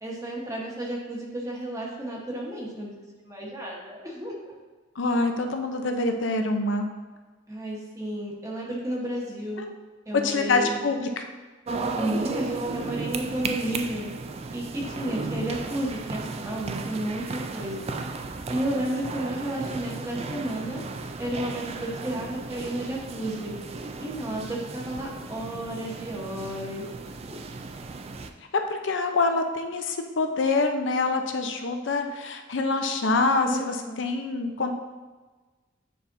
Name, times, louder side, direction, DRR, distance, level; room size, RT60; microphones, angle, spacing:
voice 1, 0.0-4.5 7.5-9.6 10.1-10.8 11.9-14.1 14.5-18.0 18.5-20.8 21.2-23.5 24.0-26.8 33.4-34.0, right 1 dB, 15° right, -3 dB, 1.1 m, -32 dB
voice 2, 5.0-6.9 9.6-9.7 10.1-11.2 28.5-34.7, left 3 dB, 70° left, 5 dB, 0.6 m, -25 dB
sound 1, 11.7-28.3, right 3 dB, 30° right, 0.3 m, -35 dB
9.2 x 4.2 x 2.6 m, 1.3 s
head